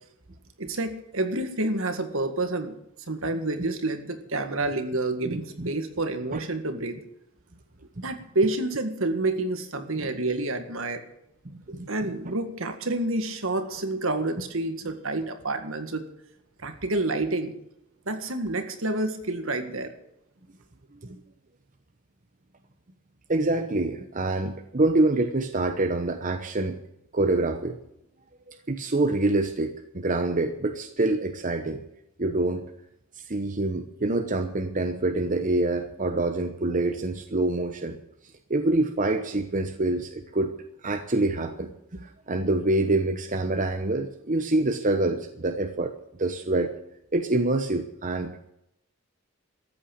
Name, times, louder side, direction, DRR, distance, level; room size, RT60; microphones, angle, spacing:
voice 1, 0.6-2.7 3.1-7.0 8.0-11.0 11.9-16.1 16.6-17.5 18.1-19.9, right 2 dB, 65° right, 7 dB, 1.9 m, -28 dB
voice 2, 5.3-5.7 6.3-6.4 10.0-10.1 11.5-12.3 21.0-21.2 23.3-26.8 27.1-27.8 28.5-31.8 32.2-32.6 33.2-38.0 38.5-40.5 40.8-45.9 46.2-46.7 47.1-48.4, right 2 dB, 40° right, 7 dB, 1.0 m, -26 dB
14.0 x 8.8 x 8.7 m, 0.80 s
head